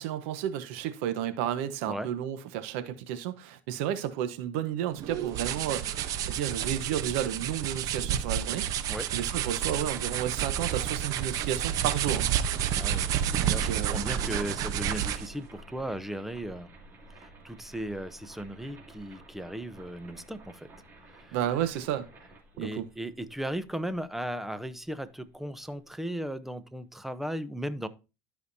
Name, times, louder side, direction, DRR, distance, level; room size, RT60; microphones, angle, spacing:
voice 1, 0.0-8.7 9.0-12.3 13.4-14.0 21.3-22.1 22.6-22.9, right 10 dB, 80° right, 1.1 m, -32 dB
sound 1, 5.0-15.4, right 10 dB, 55° right, 0.8 m, -30 dB
sound 2, 9.4-26.3, right 1 dB, 30° right, 2.8 m, -52 dB
voice 2, 12.7-16.7 17.2-20.7 21.1-21.4 22.5-27.9, right 1 dB, 5° right, 0.7 m, -36 dB
12.5 x 5.1 x 2.7 m
supercardioid pair, 105°, 7 cm